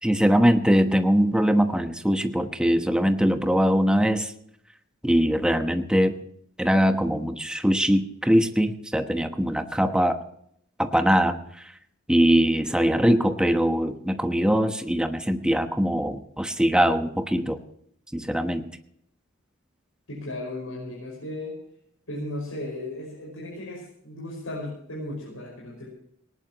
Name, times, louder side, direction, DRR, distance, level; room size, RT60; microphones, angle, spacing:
voice 1, 0.0-4.3 5.0-6.1 6.6-10.2 10.8-11.7 12.1-17.6 18.1-18.7, equal, 5° right, 6 dB, 1.2 m, -22 dB
voice 2, 20.1-21.6 22.1-25.9, left 1 dB, 85° left, -3 dB, 5.5 m, -35 dB
19.0 x 19.0 x 3.0 m, 0.69 s
head